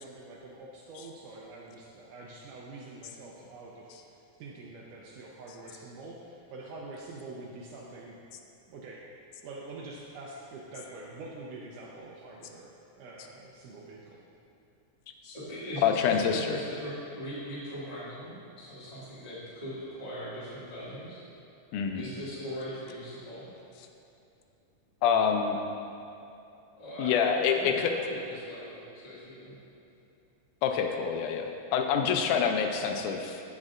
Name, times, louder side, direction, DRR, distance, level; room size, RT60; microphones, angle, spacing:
voice 1, 0.0-4.0 4.4-8.2 8.7-9.0 9.4-12.7 13.0-14.2, right 2 dB, 80° right, -3 dB, 2.1 m, -45 dB
voice 2, 15.2-21.2 21.9-23.5 26.8-29.6, equal, 15° left, -10 dB, 1.3 m, -40 dB
voice 3, 15.8-16.6 21.7-22.0 25.0-25.6 27.0-27.9 30.6-33.4, left 7 dB, 80° left, 4 dB, 2.0 m, -26 dB
15.5 x 5.3 x 2.5 m, 2.7 s
omnidirectional pair, 3.7 m